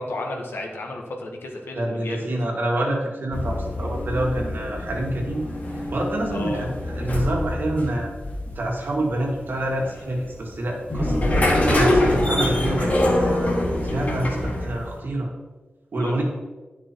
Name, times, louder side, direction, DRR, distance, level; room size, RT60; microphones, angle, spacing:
voice 1, 0.0-2.3 6.3-6.7 15.9-16.2, left 2 dB, 85° left, 1 dB, 1.6 m, -33 dB
voice 2, 1.8-5.5 5.9-8.1 8.5-13.5 13.9-15.3 15.9-16.2, right 1 dB, 70° right, -1 dB, 2.2 m, -27 dB
sound 1, 3.3-15.0, left 1 dB, 45° left, 2.3 m, -25 dB
10.5 x 6.1 x 4.6 m, 1.2 s
wide cardioid pair, 105°, 4 cm